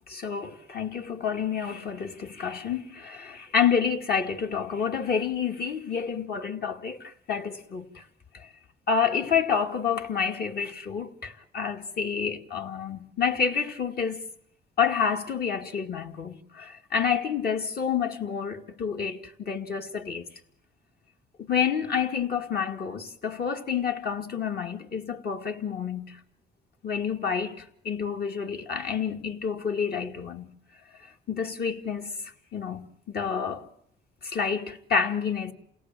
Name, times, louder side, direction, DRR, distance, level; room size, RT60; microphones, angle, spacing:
voice 1, 0.1-8.0 8.3-8.5 8.9-14.2 14.8-20.3 21.4-26.2 26.8-30.5 31.3-32.1 32.5-33.7 34.2-35.5, left 6 dB, 50° left, 2.3 m, -29 dB
28.5 x 17.5 x 7.6 m
cardioid pair, 90°, 20 cm